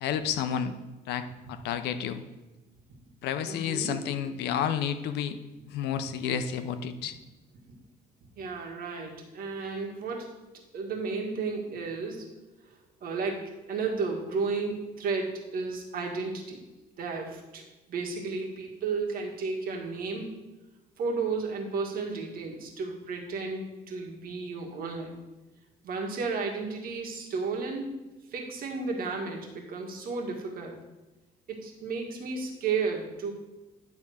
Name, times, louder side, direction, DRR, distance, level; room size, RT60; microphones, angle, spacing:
voice 1, 0.0-0.7 1.1-2.2 3.2-5.4 5.7-7.1, left 8 dB, 80° left, 10 dB, 0.7 m, -30 dB
voice 2, 3.4-4.0 8.4-10.3 10.7-12.3 13.0-16.6 17.0-17.6 17.9-20.3 21.0-25.1 25.8-28.0 28.3-30.8 31.5-33.3, right 4 dB, 60° right, 1 dB, 1.8 m, -33 dB
10.5 x 3.6 x 6.4 m, 1.1 s
cardioid pair, 110°, 17 cm